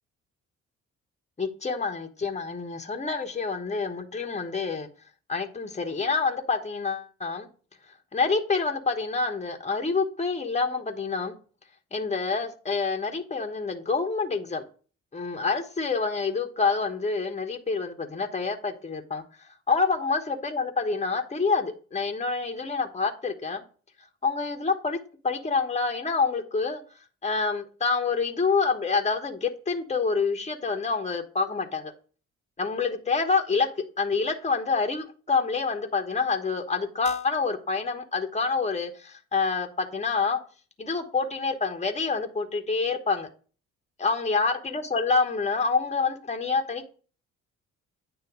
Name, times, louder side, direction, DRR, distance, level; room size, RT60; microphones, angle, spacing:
voice 1, 1.4-4.9 5.3-7.5 8.1-11.3 11.9-14.6 15.1-19.2 19.7-23.6 24.2-25.0 25.2-26.8 27.2-31.9 32.6-33.7 34.0-40.4 40.8-43.3 44.0-46.9, left 4 dB, 15° left, 1.2 m, -27 dB
9.0 x 3.2 x 6.0 m
figure-of-eight pair, 45°, 38 cm